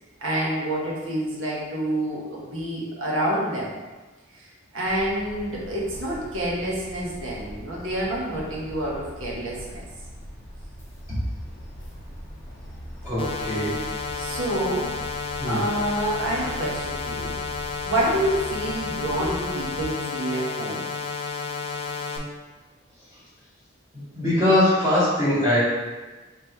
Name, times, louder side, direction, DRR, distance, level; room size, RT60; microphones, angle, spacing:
voice 1, 0.2-3.7 4.3-4.5 4.7-9.8 14.2-14.9 15.2-17.4 17.9-20.8, right 1 dB, 90° right, -5 dB, 1.2 m, -28 dB
sound 1, 4.8-19.8, equal, 10° left, 1.0 m, -41 dB
voice 2, 13.0-13.8 15.4-15.6 16.4-16.5 24.1-25.6, left 1 dB, 15° right, -11 dB, 1.2 m, -22 dB
sound 2, 13.2-22.2, left 5 dB, 25° left, 0.5 m, -31 dB
3.4 x 3.0 x 4.4 m, 1.2 s
head